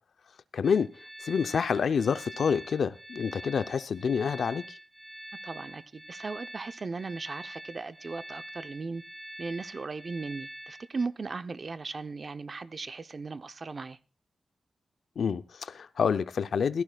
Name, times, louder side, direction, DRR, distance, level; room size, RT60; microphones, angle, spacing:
voice 1, 0.5-0.9 1.2-4.6 15.2-16.8, left 6 dB, 80° left, 0.6 m, -28 dB
sound 1, 0.6-11.1, right 1 dB, 15° right, 0.7 m, -45 dB
voice 2, 5.4-9.0 9.4-14.0, right 4 dB, 50° right, 0.7 m, -37 dB
16.5 x 14.5 x 2.3 m
cardioid pair, 65°, 0 cm